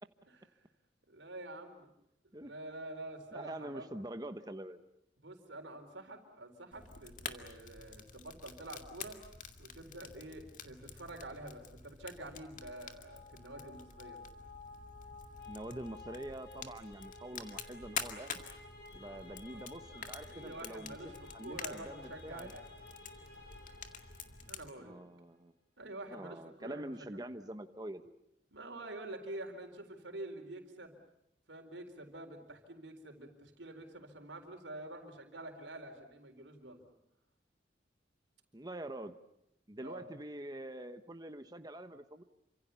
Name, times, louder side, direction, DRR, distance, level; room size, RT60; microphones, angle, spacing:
voice 1, 1.1-1.9 2.4-3.9 5.2-9.2 9.6-14.2 19.5-19.6 19.9-22.7 24.5-25.0 25.8-27.2 28.5-31.0 31.5-36.8 39.7-40.1, right 1 dB, 80° right, 4 dB, 4.1 m, -47 dB
voice 2, 3.3-4.8 15.5-18.4 18.9-20.9 21.3-22.5 24.8-25.5 26.1-28.1 38.5-39.2 39.7-42.2, right 1 dB, 20° right, 8 dB, 1.1 m, -45 dB
Fire, 6.7-24.7, left 6 dB, 45° left, 2.1 m, -48 dB
sound 1, 12.0-24.9, left 3 dB, 60° left, 7.6 m, -54 dB
28.5 x 26.0 x 7.0 m, 0.82 s
head